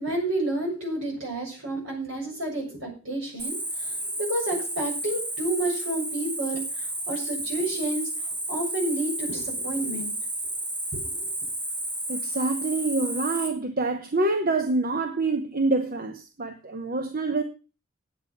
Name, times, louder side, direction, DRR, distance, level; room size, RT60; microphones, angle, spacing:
voice 1, 0.0-8.1 8.5-10.1 11.0-11.2, right 1 dB, 65° right, 7.2 m, -30 dB
Cricket, 3.4-13.5, right 1 dB, 25° right, 4.2 m, -32 dB
voice 2, 12.1-17.4, right 2 dB, 45° right, 1.0 m, -26 dB
9.8 x 8.5 x 7.2 m
head